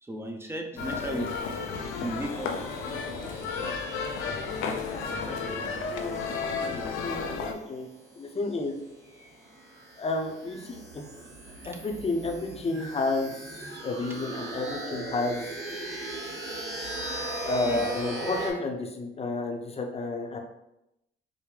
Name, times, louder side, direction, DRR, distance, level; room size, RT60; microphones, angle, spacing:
voice 1, 0.0-1.7 2.0-3.7 5.0-5.8 6.6-7.2 10.7-10.8 11.1-11.8 15.8-15.9 17.6-17.8, right 1 dB, 10° right, 3 dB, 0.6 m, -39 dB
sound 1, 0.8-7.5, left 5 dB, 85° left, 0.5 m, -33 dB
sound 2, 0.8-18.5, right 1 dB, 60° right, 1.4 m, -40 dB
voice 2, 5.9-6.2 7.0-7.9 8.2-8.8 10.0-11.1 11.6-15.4 17.5-20.4, left 2 dB, 30° left, 2 dB, 0.7 m, -31 dB
5.0 x 2.1 x 3.2 m, 0.86 s
cardioid pair, 90°, 20 cm